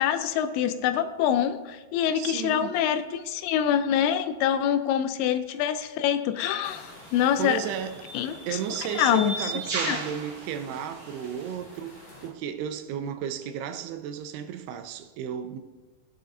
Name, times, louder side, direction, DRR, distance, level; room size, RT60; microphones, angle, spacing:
voice 1, 0.0-7.6 8.1-8.3 8.9-9.4 9.9-10.0, left 10 dB, 85° left, 2.4 m, -25 dB
voice 2, 2.1-2.8 7.4-8.1 8.5-15.6, right 9 dB, 80° right, 2.4 m, -33 dB
sound 1, 6.1-6.3 7.3-11.5, right 3 dB, 50° right, 1.9 m, -36 dB
sound 2, 6.6-12.3, left 1 dB, 50° left, 4.4 m, -48 dB
15.0 x 7.5 x 2.7 m
omnidirectional pair, 4.8 m